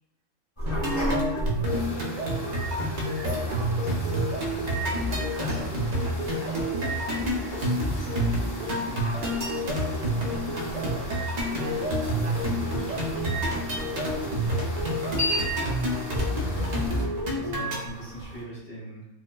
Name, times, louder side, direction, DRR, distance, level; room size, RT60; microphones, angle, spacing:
sound 1, 0.6-18.4, left 1 dB, 25° left, 0.9 m, -35 dB
sound 2, 0.7-17.8, equal, 50° right, 0.5 m, -28 dB
voice 1, 1.5-2.3 3.4-7.0 7.8-8.2 9.0-13.9 15.1-15.4, right 3 dB, 70° right, 0 dB, 0.9 m, -43 dB
sound 3, 1.6-17.0, left 1 dB, 75° left, 1.8 m, -41 dB
voice 2, 7.8-8.2 14.8-15.9 17.2-19.0, right 1 dB, 60° left, -13 dB, 1.9 m, -41 dB
4.6 x 2.1 x 2.2 m, 0.91 s
omnidirectional pair, 1.3 m